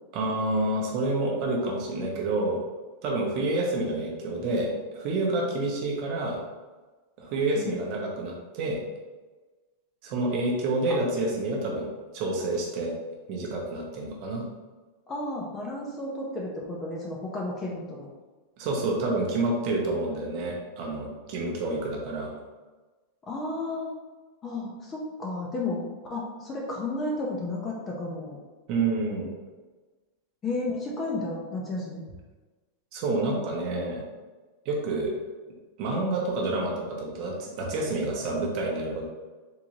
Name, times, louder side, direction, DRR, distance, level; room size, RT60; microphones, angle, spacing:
voice 1, 0.1-2.6 3.0-6.4 7.2-8.8 10.0-11.9 12.1-12.9 13.3-14.5 18.6-22.3 28.7-29.3 32.9-34.0 34.6-35.1 35.8-39.0, right 2 dB, 35° right, -1 dB, 0.6 m, -28 dB
voice 2, 15.1-18.1 23.3-23.9 24.4-25.8 26.1-28.4 30.4-32.0, left 2 dB, 15° left, -2 dB, 0.4 m, -32 dB
3.7 x 2.6 x 3.0 m, 1.3 s
supercardioid pair, 180°, 0 cm